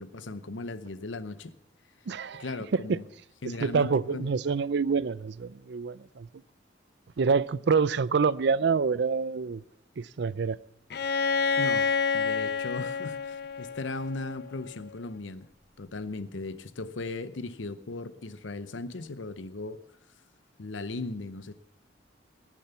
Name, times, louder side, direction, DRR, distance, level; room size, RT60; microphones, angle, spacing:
voice 1, 0.0-1.5 2.4-3.0 3.4-4.3 11.6-11.9 12.1-15.5 15.8-19.8 20.6-21.5, left 3 dB, 90° left, 0.8 m, -37 dB
voice 2, 2.1-2.4 2.9-3.0 3.6-6.3 7.2-9.6 10.0-10.6, right 5 dB, 65° right, 0.5 m, -26 dB
Bowed string instrument, 10.9-14.7, left 5 dB, 60° left, 0.8 m, -29 dB
19.0 x 7.3 x 6.9 m
head